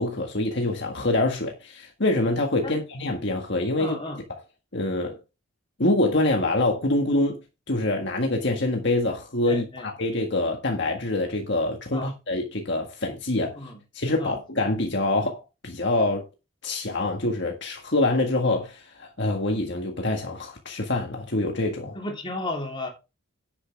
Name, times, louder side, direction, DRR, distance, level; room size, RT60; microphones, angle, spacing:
voice 1, 0.0-4.0 4.7-5.2 5.8-7.4 7.7-13.6 14.0-16.2 16.6-22.0, left 2 dB, 55° left, 1.7 m, -25 dB
voice 2, 3.8-4.2 9.5-9.9 11.9-12.1 13.5-13.8 14.2-14.4 21.9-22.9, left 2 dB, 25° left, 3.4 m, -33 dB
10.5 x 9.3 x 3.5 m
head